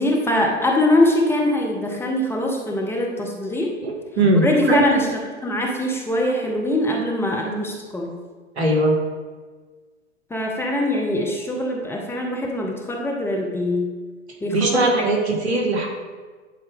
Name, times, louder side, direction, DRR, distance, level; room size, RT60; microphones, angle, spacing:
voice 1, 0.0-3.7 4.4-5.1 5.4-8.2 10.3-13.9 14.4-15.1 15.4-15.6, left 1 dB, 5° left, 0 dB, 0.7 m, -22 dB
voice 2, 3.8-4.8 8.6-8.9 14.5-15.9, right 2 dB, 65° right, 0 dB, 1.9 m, -20 dB
10.5 x 4.5 x 3.6 m, 1.4 s
figure-of-eight pair, 105°, 36 cm